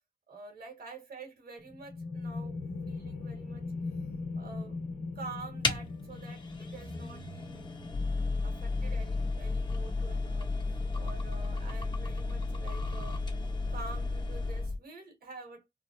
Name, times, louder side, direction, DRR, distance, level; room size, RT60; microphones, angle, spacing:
voice 1, 0.3-2.6 2.9-3.7 4.3-4.8 5.1-7.7 8.4-10.6 10.9-13.2 13.7-15.7, right 4 dB, 75° right, 1.7 m, -47 dB
sound 1, 1.6-13.0, left 3 dB, 65° left, 1.0 m, -41 dB
sound 2, 5.6-14.8, left 2 dB, 30° left, 1.3 m, -41 dB
sound 3, 7.9-14.8, left 3 dB, 15° left, 0.9 m, -33 dB
3.3 x 2.1 x 2.7 m
cardioid pair, 55°, 16 cm